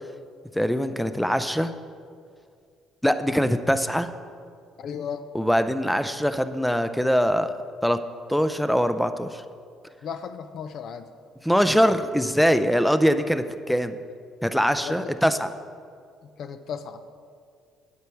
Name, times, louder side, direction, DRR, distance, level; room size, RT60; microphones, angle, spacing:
voice 1, 0.5-1.7 3.0-4.1 5.3-7.5 7.8-8.0 8.3-9.4 11.4-14.0 14.4-15.5, equal, ahead, 10 dB, 0.4 m, -22 dB
voice 2, 4.8-5.3 10.0-11.1 12.7-12.8 14.8-15.1 16.2-17.0, left 7 dB, 60° left, 10 dB, 0.5 m, -35 dB
8.3 x 8.2 x 4.6 m, 2.2 s
cardioid pair, 95°, 0 cm